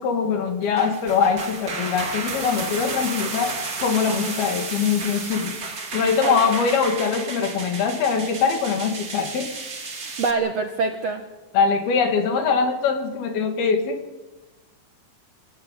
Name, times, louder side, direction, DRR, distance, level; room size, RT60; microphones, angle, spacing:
voice 1, 0.0-3.6 3.8-5.6 5.9-9.5 11.5-14.0, left 6 dB, 75° left, 6 dB, 4.2 m, -22 dB
sound 1, 0.6-10.3, right 4 dB, 30° right, 2.1 m, -32 dB
voice 2, 10.0-11.2, right 4 dB, 65° right, 6 dB, 1.7 m, -25 dB
27.5 x 14.0 x 9.1 m, 1.2 s
omnidirectional pair, 4.5 m